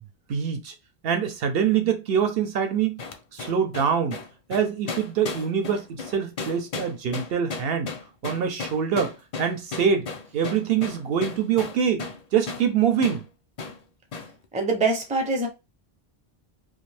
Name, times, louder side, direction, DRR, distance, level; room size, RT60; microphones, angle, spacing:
voice 1, 0.3-0.7 1.0-3.0 3.3-4.2 4.5-7.9 8.2-9.1 9.4-10.1 10.3-12.0 12.3-13.2, right 7 dB, 70° right, 0.8 m, -24 dB
sound 1, 3.0-12.2 12.5-12.7 13.0-13.2 13.6-13.8 14.1-14.3, left 4 dB, 50° left, 0.5 m, -35 dB
voice 2, 14.5-15.5, right 3 dB, 10° right, 0.4 m, -24 dB
2.5 x 2.2 x 3.2 m
omnidirectional pair, 1.1 m